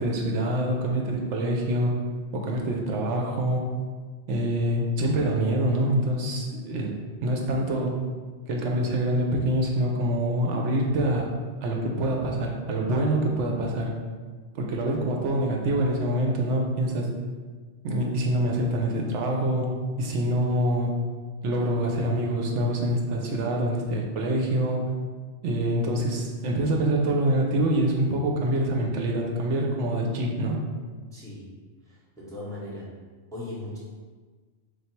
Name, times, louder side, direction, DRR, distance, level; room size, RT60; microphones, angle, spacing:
voice 1, 0.0-1.9 2.3-3.7 4.3-7.0 7.2-8.0 8.5-11.3 11.6-13.9 14.5-17.1 17.8-21.0 21.4-24.9 25.4-30.6, right 1 dB, 70° right, 0 dB, 0.9 m, -25 dB
voice 2, 31.1-31.6 31.8-32.9 33.3-33.8, left 1 dB, 5° left, -7 dB, 0.5 m, -38 dB
3.3 x 2.3 x 4.3 m, 1.5 s
omnidirectional pair, 1.3 m